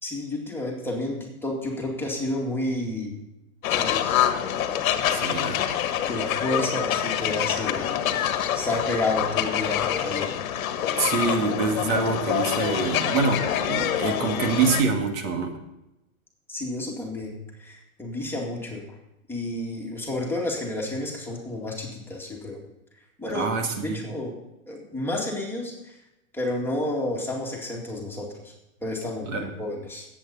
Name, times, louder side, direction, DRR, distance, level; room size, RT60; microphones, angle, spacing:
voice 1, 0.0-3.2 3.7-4.2 6.1-7.9 8.5-10.4 16.5-18.8 19.3-22.6 23.2-23.5 23.8-24.3 24.7-26.0 26.3-28.5 28.8-30.1, left 2 dB, 5° left, -2 dB, 2.2 m, -30 dB
sound 1, 3.6-14.8, left 10 dB, 65° left, 1.4 m, -26 dB
voice 2, 5.1-5.6 11.0-15.5 23.3-24.0 29.3-29.5, right 4 dB, 60° right, 4 dB, 2.2 m, -25 dB
20.0 x 8.3 x 4.2 m, 0.90 s
hypercardioid pair, 135°, 44 cm